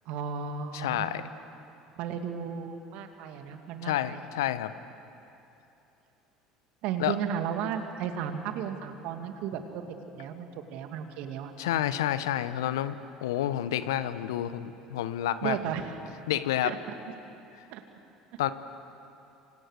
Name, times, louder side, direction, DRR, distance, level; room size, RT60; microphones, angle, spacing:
voice 1, 0.1-1.4 2.0-4.3 6.8-9.8 10.1-11.5 15.4-15.9 16.6-16.8 17.7-17.8, right 8 dB, 60° right, 6 dB, 2.2 m, -34 dB
voice 2, 0.7-1.2 3.8-4.7 7.0-7.2 11.6-15.6 16.3-16.7 18.4-18.5, left 12 dB, 75° left, 13 dB, 0.9 m, -29 dB
26.5 x 26.5 x 6.6 m, 2.9 s
figure-of-eight pair, 65°, 2 cm